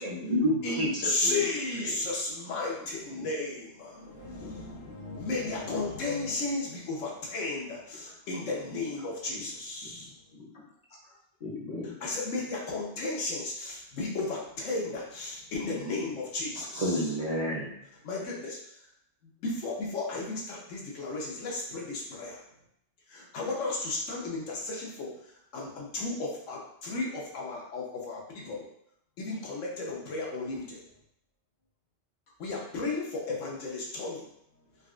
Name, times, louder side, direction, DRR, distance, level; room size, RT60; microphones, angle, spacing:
voice 1, 0.0-1.4 1.8-1.9 16.8-17.7, equal, 40° right, -8 dB, 0.7 m, -29 dB
voice 2, 0.6-10.1 12.0-17.0 18.1-18.6 19.4-22.4 23.1-25.1 25.5-28.7 29.2-30.8 32.4-34.2, left 3 dB, 85° left, -2 dB, 1.2 m, -34 dB
voice 3, 9.9-10.7 11.0-11.1 11.4-11.9, left 3 dB, 35° left, -5 dB, 0.8 m, -42 dB
4.0 x 2.3 x 2.4 m, 0.72 s
omnidirectional pair, 1.3 m